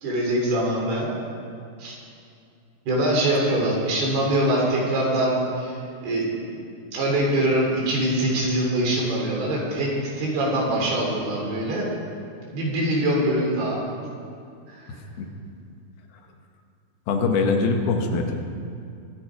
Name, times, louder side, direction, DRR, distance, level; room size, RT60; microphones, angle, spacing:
voice 1, 0.0-1.1 1.8-2.0 2.9-6.3 6.9-9.9 10.2-11.9 12.5-13.8 14.8-14.9, right 1 dB, 75° right, -3 dB, 5.2 m, -23 dB
voice 2, 17.1-18.4, left 4 dB, 75° left, 3 dB, 3.2 m, -22 dB
23.5 x 10.5 x 4.9 m, 2.5 s
omnidirectional pair, 4.6 m